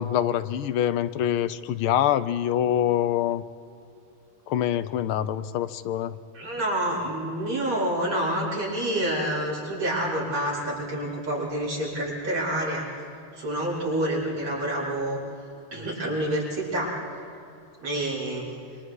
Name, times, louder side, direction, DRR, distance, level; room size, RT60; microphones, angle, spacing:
voice 1, 0.0-3.4 4.5-6.1, left 11 dB, 80° left, 13 dB, 1.7 m, -25 dB
voice 2, 6.3-12.9 13.4-15.2 15.7-17.0 17.8-18.5, right 1 dB, 85° right, -6 dB, 7.3 m, -28 dB
27.0 x 26.0 x 4.8 m, 2.5 s
omnidirectional pair, 2.3 m